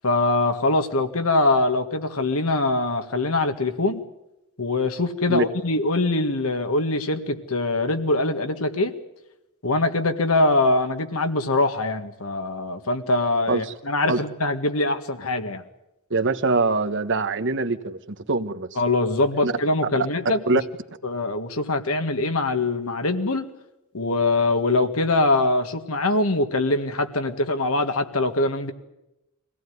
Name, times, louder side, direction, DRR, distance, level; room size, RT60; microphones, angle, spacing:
voice 1, 0.0-4.0 4.6-8.9 9.6-15.6 18.8-20.4 21.0-23.5 23.9-28.7, left 2 dB, 75° left, 7 dB, 2.0 m, -23 dB
voice 2, 16.1-18.8 19.4-19.5 20.5-20.6, right 3 dB, 60° right, 10 dB, 1.3 m, -23 dB
24.0 x 17.0 x 9.6 m, 0.90 s
head